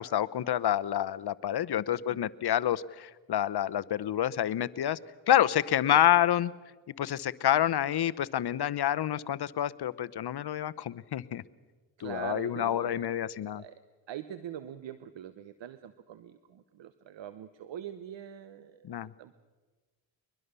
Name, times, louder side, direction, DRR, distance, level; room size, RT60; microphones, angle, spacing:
voice 1, 0.0-5.0 5.3-6.5 7.0-11.4 12.0-13.6 18.8-19.1, left 11 dB, 55° left, 16 dB, 0.9 m, -28 dB
voice 2, 12.0-13.8 14.1-19.4, right 10 dB, 65° right, 13 dB, 1.1 m, -43 dB
23.0 x 21.5 x 6.9 m, 1.3 s
supercardioid pair, 60°, 47 cm